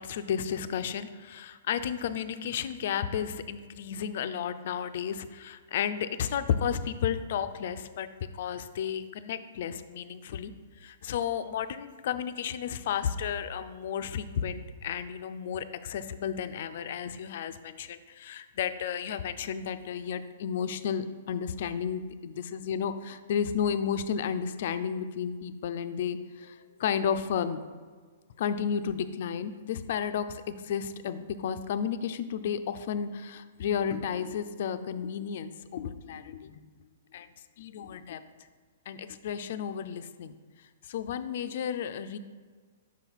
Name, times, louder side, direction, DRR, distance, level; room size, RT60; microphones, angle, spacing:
voice 1, 0.0-8.1 8.3-10.5 10.8-27.6 28.4-36.6 37.1-37.3 37.6-38.2 38.9-40.3 40.8-42.2, left 8 dB, 60° left, 11 dB, 0.3 m, -32 dB
5.7 x 4.0 x 4.5 m, 1.5 s
hypercardioid pair, 135°, 0 cm